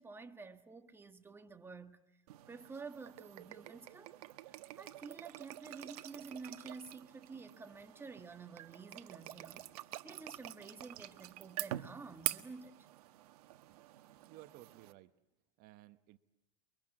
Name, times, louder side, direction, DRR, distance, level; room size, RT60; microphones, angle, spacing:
voice 1, 0.0-2.2 2.5-4.1 4.5-9.7 10.0-12.9, right 4 dB, 10° right, 1.5 m, -50 dB
sound 1, 2.3-14.9, right 15 dB, 75° right, 1.4 m, -46 dB
voice 2, 14.3-15.1 15.6-16.2, right 16 dB, 50° right, 1.2 m, -56 dB
29.5 x 23.5 x 7.6 m
supercardioid pair, 125°, 20 cm